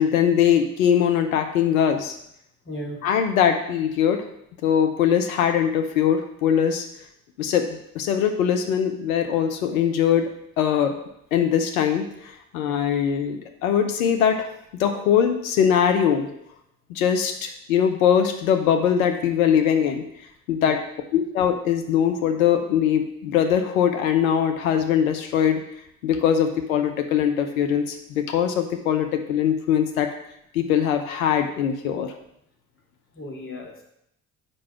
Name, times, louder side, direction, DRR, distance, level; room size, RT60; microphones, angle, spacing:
voice 1, 0.0-2.2 3.0-4.3 4.6-6.8 7.4-10.3 10.6-10.9 11.3-14.5 14.8-16.3 16.9-20.1 20.5-20.8 21.1-25.6 26.0-30.1 30.5-32.1, left 8 dB, 75° left, 6 dB, 0.8 m, -21 dB
voice 2, 2.7-3.0 10.7-10.8 12.6-12.8 20.6-20.8 33.1-33.8, left 1 dB, 30° left, -1 dB, 2.6 m, -36 dB
5.4 x 5.4 x 6.0 m, 0.77 s
figure-of-eight pair, 55°, 42 cm